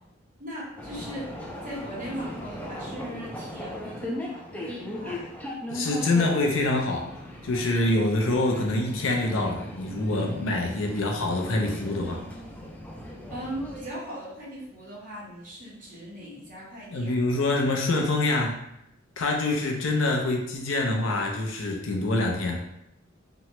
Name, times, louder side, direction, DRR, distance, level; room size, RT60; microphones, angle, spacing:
voice 1, 0.4-1.3 1.6-5.3 13.3-17.1, equal, 45° right, -6 dB, 1.0 m, -39 dB
sound 1, 0.8-13.9, left 1 dB, 5° left, 0.3 m, -38 dB
voice 2, 5.7-7.0 7.4-12.2 16.9-18.6 19.2-22.7, left 2 dB, 70° left, 1 dB, 0.5 m, -25 dB
2.9 x 2.2 x 2.9 m, 0.80 s
head